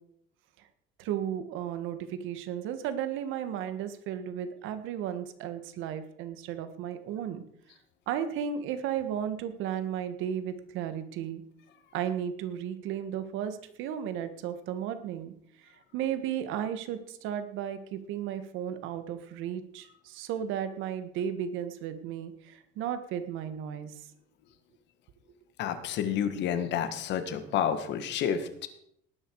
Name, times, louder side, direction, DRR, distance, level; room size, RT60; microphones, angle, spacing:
voice 1, 1.0-7.4 8.1-11.4 11.9-15.3 15.6-23.9, right 9 dB, 80° right, 10 dB, 1.7 m, -34 dB
voice 2, 25.6-28.7, left 8 dB, 60° left, 10 dB, 1.8 m, -30 dB
18.5 x 10.5 x 4.8 m, 0.70 s
cardioid pair, 165°, 20 cm